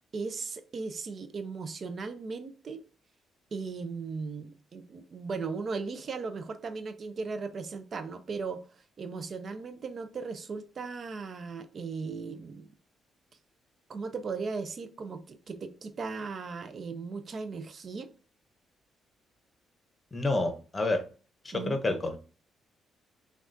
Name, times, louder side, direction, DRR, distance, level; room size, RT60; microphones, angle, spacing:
voice 1, 0.1-2.8 3.5-8.6 9.0-12.7 13.9-18.1 21.5-21.9, right 4 dB, 45° right, 0.4 m, -37 dB
voice 2, 20.1-21.0 21.4-22.2, left 2 dB, 25° left, 0.8 m, -29 dB
5.9 x 2.3 x 2.6 m
cardioid pair, 90°, 0 cm